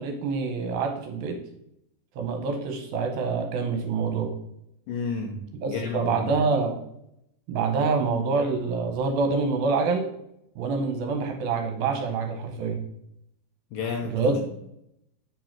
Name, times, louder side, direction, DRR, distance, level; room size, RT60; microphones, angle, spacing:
voice 1, 0.0-1.4 2.2-4.3 5.5-6.8 7.5-10.1 10.6-12.8 14.1-14.4, right 4 dB, 70° right, 5 dB, 2.5 m, -26 dB
voice 2, 4.9-5.4 5.7-6.3 13.7-14.5, left 5 dB, 70° left, 3 dB, 2.2 m, -31 dB
9.3 x 5.4 x 5.9 m, 0.79 s
omnidirectional pair, 4.9 m